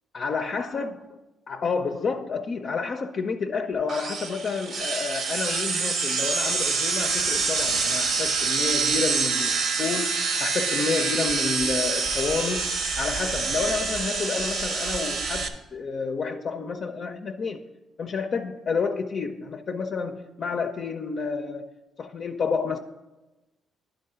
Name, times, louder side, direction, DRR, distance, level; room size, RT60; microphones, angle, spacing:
voice 1, 0.1-1.2 1.5-17.7 18.0-21.7 22.0-22.8, left 5 dB, 50° left, 0.4 m, -30 dB
sound 1, 3.9-15.5, right 4 dB, 70° right, 0.8 m, -26 dB
11.0 x 3.8 x 5.5 m
cardioid pair, 90°, 0 cm